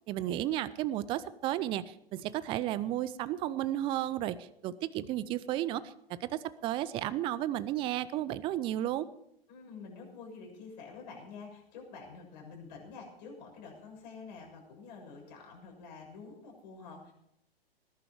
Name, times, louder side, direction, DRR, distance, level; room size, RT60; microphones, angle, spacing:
voice 1, 0.1-5.9 6.2-9.1, right 13 dB, 15° right, 17 dB, 0.5 m, -33 dB
voice 2, 9.5-17.1, left 4 dB, 45° left, 1 dB, 6.7 m, -48 dB
19.5 x 11.0 x 4.7 m, 0.75 s
figure-of-eight pair, 110°, 30 cm